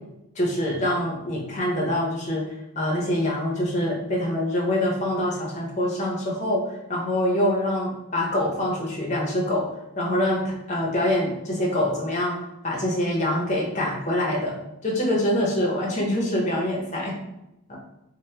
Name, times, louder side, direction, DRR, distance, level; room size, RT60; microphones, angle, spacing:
voice 1, 0.4-2.4 2.8-6.6 6.9-9.6 10.0-14.5 14.8-17.2 17.7-17.8, left 1 dB, 35° left, -3 dB, 0.6 m, -25 dB
2.8 x 2.0 x 3.3 m, 0.89 s
head